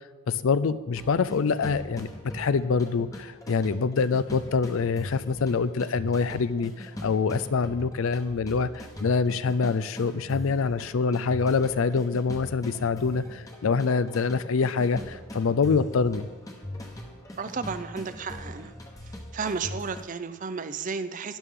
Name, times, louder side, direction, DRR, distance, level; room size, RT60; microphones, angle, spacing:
voice 1, 0.3-16.3, left 5 dB, 65° left, 15 dB, 0.4 m, -25 dB
sound 1, 1.0-20.0, left 1 dB, 15° left, 1.1 m, -41 dB
voice 2, 17.4-18.8 19.3-21.4, right 5 dB, 35° right, 12 dB, 0.5 m, -33 dB
12.5 x 11.0 x 3.7 m, 1.5 s
head